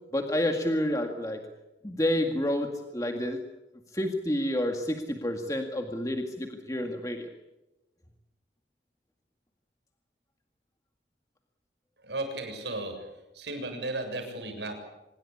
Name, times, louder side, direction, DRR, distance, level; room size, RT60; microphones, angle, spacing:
voice 1, 0.1-1.4 1.8-3.4 3.9-7.3, left 1 dB, 20° left, 4 dB, 1.9 m, -29 dB
voice 2, 12.0-12.9 13.3-14.8, right 2 dB, 75° right, 5 dB, 7.3 m, -34 dB
25.5 x 21.5 x 8.6 m, 0.98 s
head